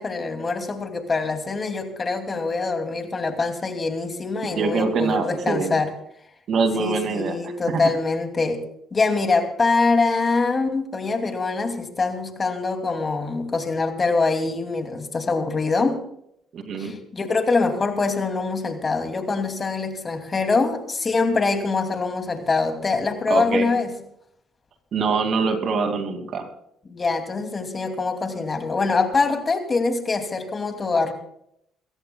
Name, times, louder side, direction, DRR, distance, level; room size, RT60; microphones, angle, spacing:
voice 1, 0.0-5.9 6.8-8.6 8.9-16.0 16.8-23.9 26.9-31.1, left 3 dB, 35° left, 6 dB, 2.7 m, -24 dB
voice 2, 4.6-5.8 6.5-7.8 16.5-16.9 23.3-23.7 24.9-26.5, right 4 dB, 55° right, 6 dB, 2.5 m, -24 dB
22.5 x 17.0 x 2.3 m, 0.71 s
hypercardioid pair, 60°, 0 cm